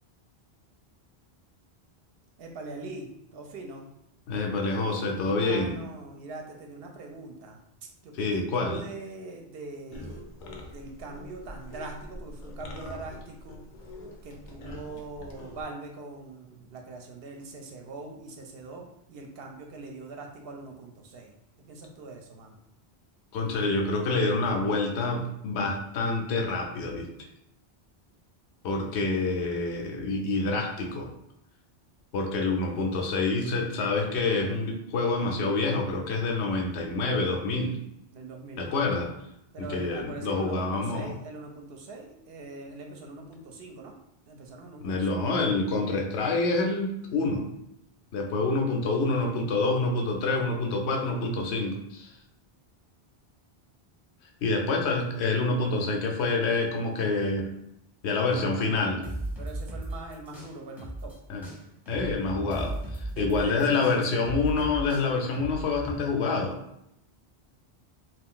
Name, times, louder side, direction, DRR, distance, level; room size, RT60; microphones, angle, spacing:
voice 1, 2.4-3.9 5.3-7.6 8.0-10.3 10.7-13.6 14.2-22.5 38.1-38.8 39.5-43.9 44.3-45.3 58.2-58.9 59.4-61.1 63.1-64.2, right 3 dB, 70° right, 2 dB, 0.7 m, -42 dB
voice 2, 4.3-5.8 8.2-8.8 23.3-27.1 28.6-31.1 32.1-37.8 38.6-39.1 39.6-41.1 44.8-47.5 48.1-52.2 54.4-57.5 58.0-59.0 61.3-61.5 61.9-66.6, left 3 dB, 85° left, 1 dB, 0.9 m, -27 dB
sound 1, 9.9-15.6, left 1 dB, 60° left, 0.6 m, -44 dB
sound 2, 59.0-61.2 61.4-66.0, right 1 dB, ahead, 0.6 m, -36 dB
2.4 x 2.2 x 3.6 m, 0.80 s
omnidirectional pair, 1.1 m